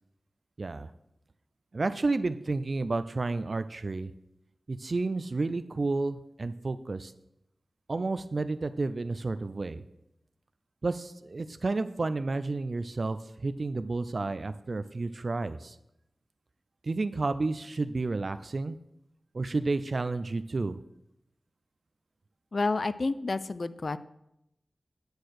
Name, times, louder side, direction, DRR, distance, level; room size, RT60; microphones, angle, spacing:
voice 1, 0.6-0.9 1.7-4.1 4.7-7.1 7.9-9.8 10.8-15.8 16.8-18.8 19.3-20.8, right 3 dB, 55° right, 12 dB, 0.4 m, -31 dB
voice 2, 22.5-24.0, left 3 dB, 55° left, 15 dB, 0.4 m, -29 dB
9.4 x 4.5 x 6.4 m, 0.83 s
wide cardioid pair, 80°, 0 cm